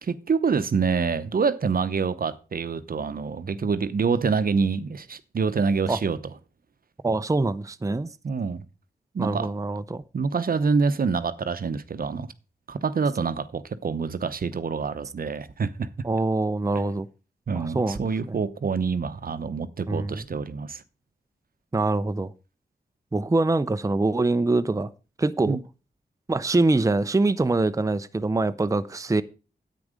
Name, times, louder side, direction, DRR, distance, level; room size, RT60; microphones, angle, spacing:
voice 1, 0.0-6.2 8.2-8.6 9.1-9.5 10.1-12.3 12.7-15.9 17.5-20.8 25.5-25.6, right 5 dB, 60° right, 0.8 m, -26 dB
voice 2, 7.0-8.1 9.2-10.0 16.0-17.1 17.5-18.0 18.3-18.4 19.9-20.3 21.7-22.3 23.1-24.9 25.2-25.6 26.3-29.2, right 2 dB, 20° right, 0.6 m, -24 dB
9.8 x 8.6 x 5.1 m
wide cardioid pair, 80°, 17 cm